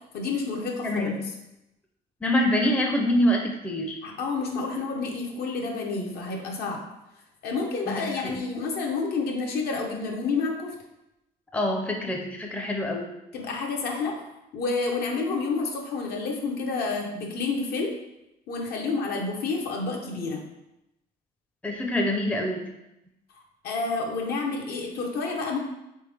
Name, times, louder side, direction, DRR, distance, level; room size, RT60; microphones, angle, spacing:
voice 1, 0.1-1.2 4.0-6.8 7.4-10.7 13.3-14.2 14.5-18.0 18.5-20.4 23.6-25.6, left 4 dB, 65° left, 1 dB, 0.8 m, -29 dB
voice 2, 0.8-1.2 2.2-4.0 7.9-8.3 11.5-13.1 21.6-22.7, left 1 dB, 10° left, 1 dB, 0.5 m, -25 dB
3.5 x 3.4 x 3.3 m, 0.90 s
cardioid pair, 110°, 17 cm